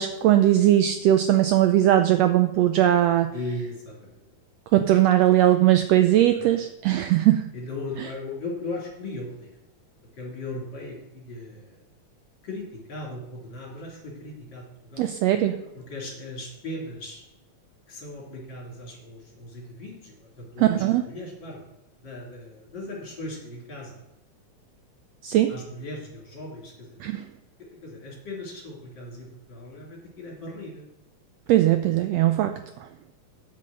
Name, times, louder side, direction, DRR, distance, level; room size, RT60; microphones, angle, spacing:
voice 1, 0.0-3.3 4.7-7.4 15.0-15.6 20.6-21.0 25.2-25.5 27.0-27.2 31.5-32.6, right 13 dB, 80° right, 8 dB, 1.5 m, -19 dB
voice 2, 3.3-4.2 6.1-6.5 7.5-9.5 10.1-11.8 12.4-15.1 15.7-17.2 17.9-21.6 22.0-24.0 25.5-27.1 27.6-30.9, left 2 dB, 40° left, -4 dB, 4.2 m, -38 dB
8.4 x 7.6 x 6.2 m, 0.97 s
omnidirectional pair, 3.3 m